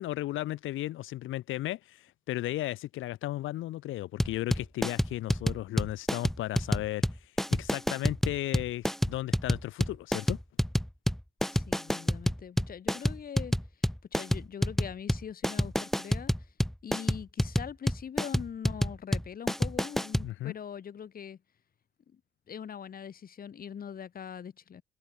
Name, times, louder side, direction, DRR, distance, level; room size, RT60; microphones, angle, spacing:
voice 1, 0.0-10.4 20.2-20.5, left 15 dB, 85° left, 1.1 m, -35 dB
sound 1, 4.2-20.3, equal, ahead, 0.7 m, -28 dB
voice 2, 11.5-13.5 14.1-16.5 16.8-21.4 22.1-22.2 22.5-24.8, left 8 dB, 45° left, 1.5 m, -42 dB
cardioid pair, 90°, 20 cm